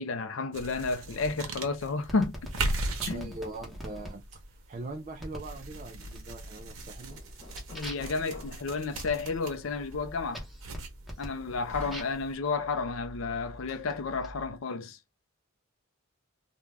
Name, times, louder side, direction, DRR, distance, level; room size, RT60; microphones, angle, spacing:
voice 1, 0.0-2.4 3.1-3.4 7.7-10.4 11.2-15.0, left 4 dB, 70° left, 0.5 m, -31 dB
sound 1, 0.5-12.3, right 2 dB, 90° right, 0.8 m, -39 dB
sound 2, 2.1-4.1 5.2-5.5 6.0-6.5 6.9-12.3 13.1-14.3, equal, ahead, 0.9 m, -44 dB
voice 2, 3.1-7.2, right 2 dB, 35° right, 0.3 m, -42 dB
Knock, 6.7-14.6, equal, 30° left, 1.0 m, -48 dB
2.4 x 2.2 x 3.1 m
head